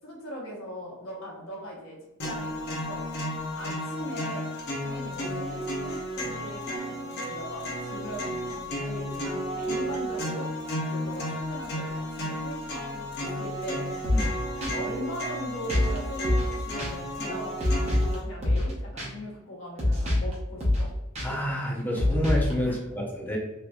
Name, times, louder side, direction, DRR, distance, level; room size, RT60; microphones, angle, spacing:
voice 1, 0.0-2.0 2.2-3.1 3.6-4.5 4.8-10.5 10.8-13.9 14.5-20.9 22.6-23.0, equal, 85° left, -3 dB, 1.1 m, -40 dB
sound 1, 2.2-18.2, equal, 50° left, 0.7 m, -33 dB
sound 2, 14.0-14.3 14.6-14.7 15.7-16.0 16.2-16.5 16.8-16.9 17.6-18.1 18.4-18.7 19.0-19.1 19.8-20.3 20.6-20.9 21.1-21.3 22.0-22.5, left 1 dB, 30° right, 0.7 m, -25 dB
voice 2, 21.2-23.4, equal, 10° left, -2 dB, 0.6 m, -29 dB
3.0 x 2.5 x 2.3 m, 1.0 s
head